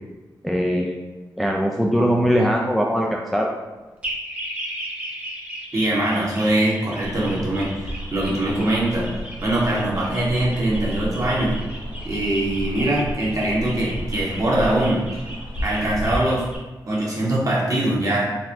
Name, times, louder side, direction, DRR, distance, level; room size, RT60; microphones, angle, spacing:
voice 1, 0.4-1.0 1.4-3.5, equal, ahead, -1 dB, 0.3 m, -21 dB
sound 1, 4.0-16.6, right 1 dB, 15° right, 0.7 m, -36 dB
voice 2, 5.7-9.1 9.4-11.5 12.0-15.0 15.6-16.5 16.9-18.3, right 1 dB, 40° right, -6 dB, 1.2 m, -22 dB
sound 2, 7.0-16.2, equal, 70° left, 0.7 m, -33 dB
4.0 x 2.1 x 2.7 m, 1.2 s
cardioid pair, 50°, 8 cm